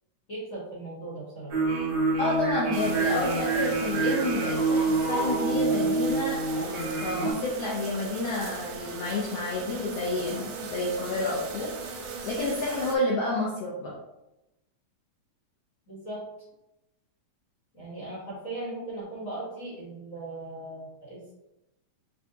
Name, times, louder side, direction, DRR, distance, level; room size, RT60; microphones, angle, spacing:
voice 1, 0.3-1.5 15.9-16.2 17.7-21.3, right 2 dB, 45° left, -9 dB, 1.1 m, -38 dB
sound 1, 1.5-7.3, right 3 dB, 65° right, 1.7 m, -27 dB
voice 2, 2.2-11.7 12.2-13.9, left 2 dB, 75° left, -4 dB, 1.4 m, -30 dB
sound 2, 2.7-13.0, right 4 dB, 80° right, 2.0 m, -38 dB
6.5 x 2.3 x 2.8 m, 0.92 s
omnidirectional pair, 3.7 m